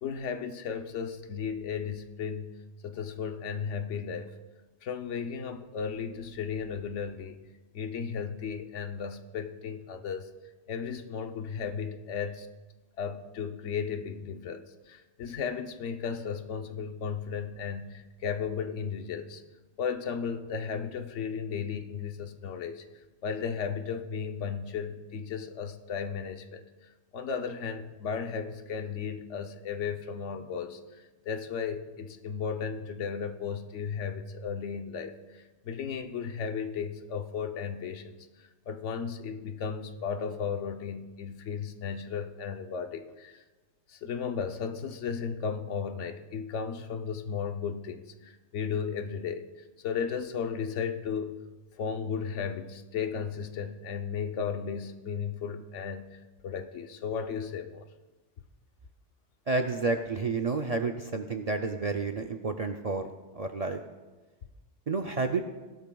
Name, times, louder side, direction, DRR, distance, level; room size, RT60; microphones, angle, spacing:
voice 1, 0.0-2.5 2.8-4.3 4.8-7.4 7.7-10.3 10.7-12.5 13.0-19.4 19.8-22.8 23.2-26.6 27.1-30.8 31.3-35.1 35.6-38.2 38.7-43.4 43.9-49.4 49.8-51.4 51.8-57.9, left 6 dB, 80° left, 7 dB, 1.1 m, -35 dB
voice 2, 59.5-63.8 64.9-65.4, right 3 dB, 50° right, 5 dB, 0.4 m, -30 dB
17.0 x 12.0 x 2.3 m, 1.2 s
omnidirectional pair, 1.2 m